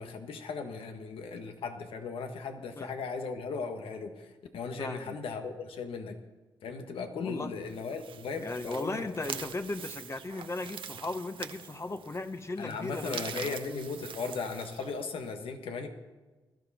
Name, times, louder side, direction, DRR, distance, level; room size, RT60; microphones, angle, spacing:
voice 1, 0.0-6.2 6.6-9.5 12.6-15.9, left 4 dB, 80° left, 5 dB, 1.6 m, -37 dB
voice 2, 4.8-5.2 7.2-7.5 8.4-13.6, left 2 dB, 30° left, 9 dB, 1.1 m, -37 dB
sound 1, 7.6-15.3, right 7 dB, 70° right, 0.8 m, -44 dB
20.0 x 12.5 x 4.3 m, 1.2 s
cardioid pair, 55°, 9 cm